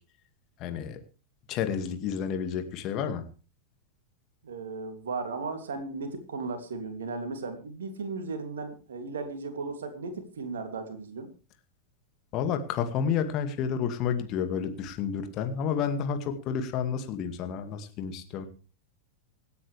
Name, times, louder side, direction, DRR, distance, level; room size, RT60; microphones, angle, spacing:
voice 1, 0.6-1.0 1.5-3.3 12.3-18.5, left 7 dB, 35° left, 7 dB, 2.2 m, -30 dB
voice 2, 4.4-11.3, right 4 dB, 65° right, 7 dB, 2.9 m, -36 dB
26.0 x 9.5 x 3.5 m, 0.35 s
figure-of-eight pair, 90°, 0 cm